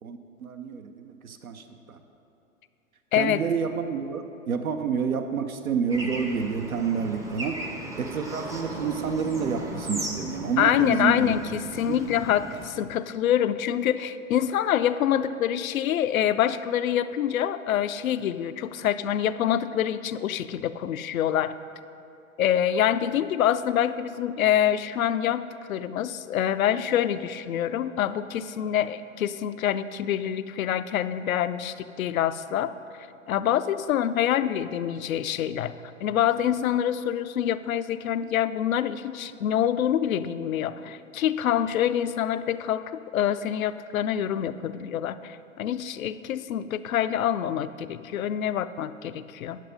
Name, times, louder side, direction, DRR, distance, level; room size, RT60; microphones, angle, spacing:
voice 1, 0.0-2.0 3.1-7.7 8.0-11.4 11.9-12.0, right 6 dB, 90° right, 7 dB, 0.7 m, -29 dB
Bird / Traffic noise roadway noise, 5.9-12.7, right 1 dB, 10° right, 0.5 m, -37 dB
voice 2, 10.6-21.6 22.4-25.4 25.7-32.7 33.3-35.7 36.0-49.6, left 10 dB, 75° left, 13 dB, 0.5 m, -26 dB
9.1 x 6.9 x 5.1 m, 2.7 s
hypercardioid pair, 115°, 41 cm